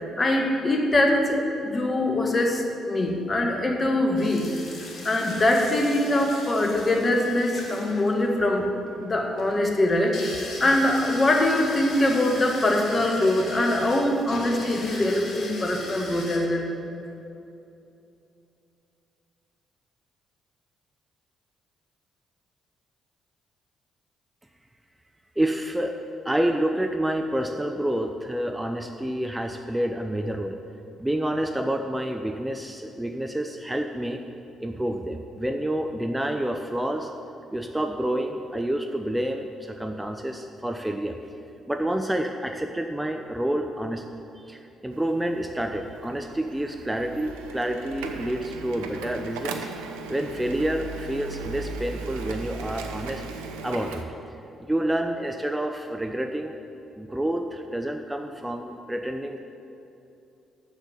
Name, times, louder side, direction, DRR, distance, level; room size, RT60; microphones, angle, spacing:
voice 1, 0.2-4.5 5.0-8.7 9.0-16.7, left 1 dB, 35° left, 2 dB, 1.5 m, -23 dB
sound 1, 4.2-16.4, left 2 dB, 50° left, 2.0 m, -39 dB
voice 2, 25.4-25.9 26.2-30.6 31.0-34.2 34.6-37.1 37.5-41.2 41.7-44.0 44.4-49.7 50.1-53.2 53.6-54.0 54.6-56.6 56.9-59.4, right 1 dB, 10° right, 5 dB, 0.6 m, -28 dB
Printer, 44.9-54.0, right 5 dB, 80° right, 0.6 m, -37 dB
7.3 x 7.3 x 7.9 m, 2.8 s
hypercardioid pair, 45°, 0 cm